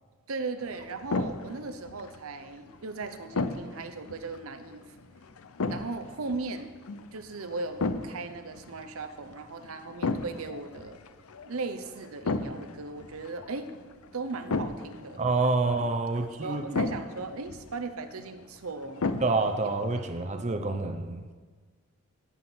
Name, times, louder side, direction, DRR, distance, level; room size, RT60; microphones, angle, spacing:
voice 1, 0.3-4.8 5.7-6.7 7.1-11.0 11.4-13.7 14.1-15.2 16.2-19.0 20.3-20.6, right 3 dB, 75° right, 8 dB, 0.8 m, -37 dB
sound 1, 0.6-20.2, left 3 dB, 80° left, 0.6 m, -36 dB
voice 2, 15.2-16.8 19.2-21.3, right 3 dB, 30° right, 6 dB, 0.6 m, -28 dB
15.0 x 5.8 x 6.1 m, 1.4 s
head